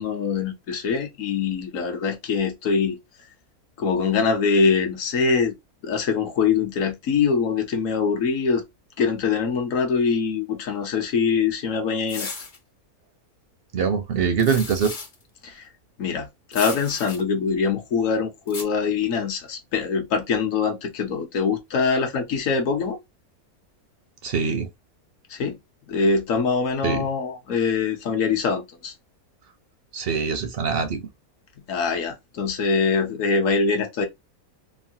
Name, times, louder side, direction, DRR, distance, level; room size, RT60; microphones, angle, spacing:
voice 1, 0.0-3.0 3.8-5.5 5.8-8.6 9.0-12.3 15.4-15.6 16.0-23.0 25.3-25.6 25.9-28.9 31.7-34.1, left 5 dB, 65° left, 1.1 m, -23 dB
sound 1, 12.1-12.6 14.4-15.2 16.5-17.2 18.5-18.6, left 4 dB, 45° left, 0.7 m, -34 dB
voice 2, 13.7-14.9 24.2-24.7 26.8-27.1 29.9-31.0, right 6 dB, 60° right, 0.6 m, -23 dB
3.1 x 2.1 x 2.6 m
omnidirectional pair, 1.6 m